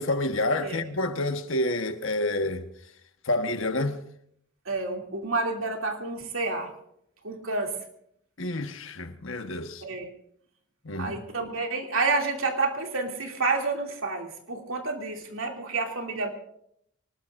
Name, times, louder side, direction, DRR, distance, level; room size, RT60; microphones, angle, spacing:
voice 1, 0.0-2.7 3.2-4.0 8.4-9.8 10.8-11.2, left 2 dB, 70° left, 1.3 m, -28 dB
voice 2, 4.6-6.7 7.2-7.8 9.8-10.1 10.9-16.3, right 3 dB, 80° right, 2.7 m, -29 dB
24.5 x 20.0 x 2.6 m
head